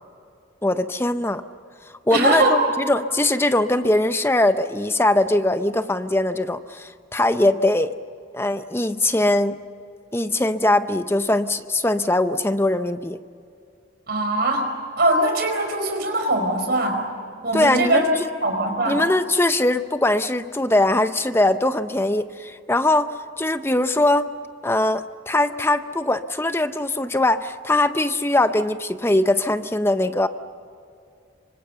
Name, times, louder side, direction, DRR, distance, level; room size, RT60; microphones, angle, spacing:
voice 1, 0.6-1.4 2.1-7.9 8.3-9.6 10.1-13.2 17.5-18.1 18.9-24.3 24.6-30.3, left 1 dB, 10° left, 10 dB, 0.6 m, -21 dB
voice 2, 2.1-2.6 14.1-17.1 17.4-18.1 18.4-19.0, right 1 dB, 55° right, 4 dB, 4.9 m, -21 dB
26.0 x 25.0 x 6.9 m, 2.5 s
head